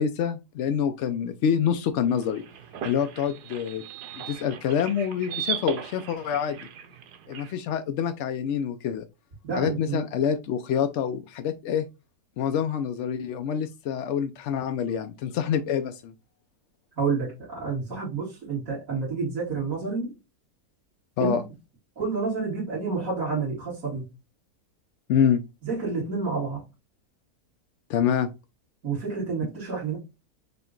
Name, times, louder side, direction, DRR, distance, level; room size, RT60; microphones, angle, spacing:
voice 1, 0.0-2.4 2.8-3.8 4.1-6.6 7.3-9.1 9.5-11.8 12.4-16.1 21.2-21.4 25.1-25.4 27.9-28.3, left 8 dB, 70° left, 0.7 m, -26 dB
sound 1, 2.0-7.5, right 8 dB, 90° right, 1.3 m, -37 dB
voice 2, 9.5-10.0 17.0-20.1 21.2-21.4 22.0-24.1 25.6-26.6 28.8-30.0, right 4 dB, 55° right, 2.2 m, -29 dB
5.7 x 2.2 x 3.7 m
omnidirectional pair, 1.7 m